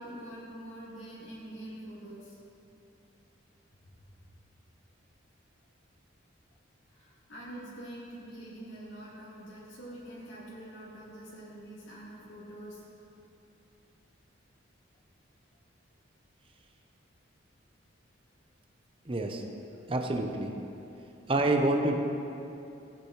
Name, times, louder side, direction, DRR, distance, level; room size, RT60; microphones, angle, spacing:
voice 1, 0.0-2.4 3.8-4.0 6.9-12.8 19.7-19.8 20.9-21.0, right 1 dB, 70° left, -8 dB, 2.6 m, -45 dB
voice 2, 19.1-19.4 19.9-20.5 21.3-21.9, right 2 dB, 25° right, 3 dB, 0.7 m, -27 dB
16.0 x 8.2 x 3.1 m, 2.8 s
head